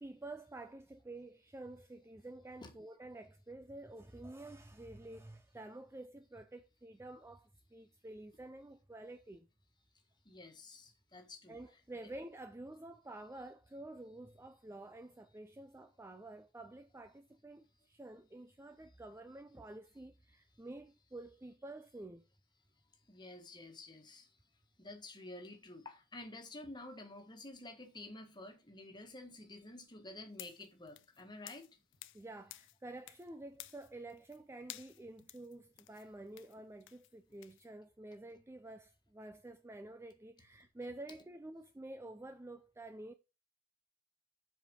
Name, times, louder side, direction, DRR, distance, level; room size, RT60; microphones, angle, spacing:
voice 1, 0.0-9.5 11.5-22.3 32.1-43.1, right 2 dB, 10° right, 0.4 m, -50 dB
voice 2, 10.2-11.6 23.1-24.4 24.8-31.7, left 2 dB, 20° left, 1.5 m, -50 dB
sound 1, 30.3-32.2 32.5-33.3 33.5-34.4 34.7-37.7, left 16 dB, 60° left, 0.5 m, -53 dB
7.6 x 5.0 x 5.2 m
head